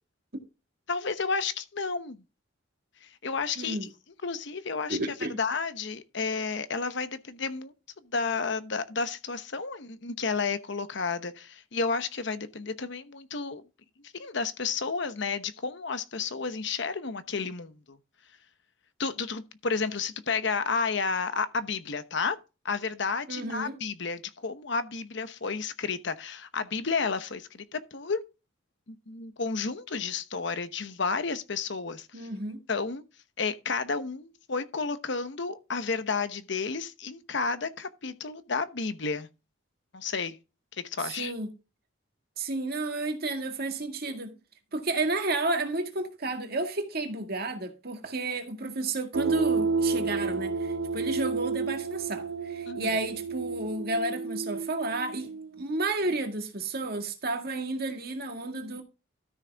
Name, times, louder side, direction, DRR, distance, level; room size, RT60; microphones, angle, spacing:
voice 1, 0.9-2.2 3.0-3.9 4.2-5.0 5.4-7.7 8.1-13.6 14.1-18.0 19.0-22.4 22.6-28.2 28.9-32.3 32.7-33.0 33.4-39.3 39.9-40.4 40.8-41.3 52.7-52.9, left 4 dB, 60° left, 0.9 m, -31 dB
voice 2, 3.6-3.9 4.9-5.4 23.3-23.8 32.1-32.6 41.0-41.5 42.4-44.3 44.7-58.8, right 2 dB, 50° right, 1.9 m, -32 dB
sound 1, 49.1-55.6, right 4 dB, 80° right, 0.5 m, -31 dB
13.0 x 6.5 x 3.5 m
head